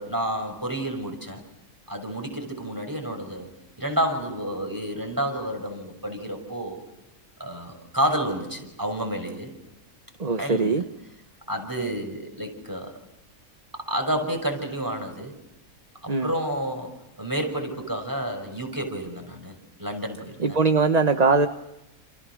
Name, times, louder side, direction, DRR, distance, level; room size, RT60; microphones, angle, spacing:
voice 1, 0.0-1.4 1.9-3.5 3.8-6.8 7.4-9.5 10.4-10.8 11.5-12.9 13.7-15.3 16.0-16.9 17.2-19.5 19.8-20.6, right 1 dB, 15° right, 4 dB, 6.2 m, -30 dB
voice 2, 10.2-10.8 16.1-16.3 20.4-21.5, right 4 dB, 30° right, 8 dB, 1.1 m, -21 dB
29.5 x 29.5 x 6.3 m, 0.91 s
omnidirectional pair, 1.5 m